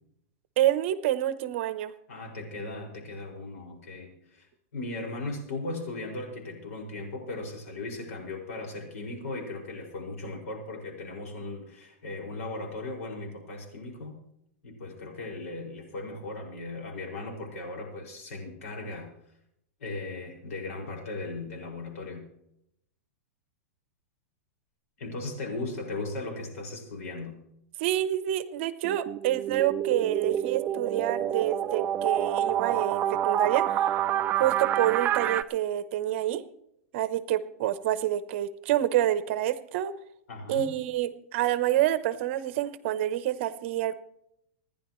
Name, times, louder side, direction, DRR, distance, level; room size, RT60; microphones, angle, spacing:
voice 1, 0.6-1.9 27.8-33.9 34.4-36.4 36.9-39.9 40.5-43.9, right 12 dB, 55° right, 13 dB, 0.9 m, -27 dB
voice 2, 2.1-4.5 4.7-14.2 14.6-19.1 19.8-22.2 25.0-27.3 40.3-40.7, left 2 dB, 80° left, 0 dB, 5.9 m, -37 dB
sound 1, 28.8-35.4, right 11 dB, 25° right, 0.4 m, -28 dB
27.5 x 10.5 x 3.2 m, 0.78 s
supercardioid pair, 150°, 8 cm